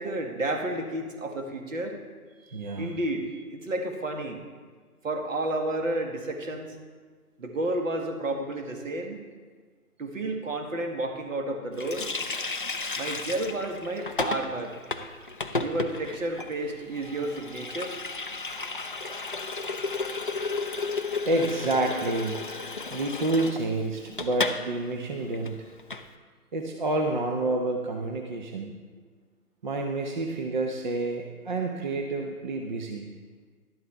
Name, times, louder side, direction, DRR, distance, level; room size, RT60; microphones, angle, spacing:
voice 1, 0.0-2.0 2.4-4.4 5.0-6.8 7.4-9.2 10.0-12.1 13.0-14.8 15.6-17.9, right 1 dB, 55° right, 4 dB, 1.8 m, -31 dB
voice 2, 2.5-2.9 21.3-22.4 22.9-25.7 26.5-28.7 29.6-33.1, right 2 dB, 30° right, 2 dB, 0.7 m, -29 dB
Water tap faucet, 11.8-24.6 24.9-25.0 25.3-26.1, left 3 dB, 35° left, 0.4 m, -33 dB
12.5 x 11.5 x 3.4 m, 1.5 s
figure-of-eight pair, 145°, 46 cm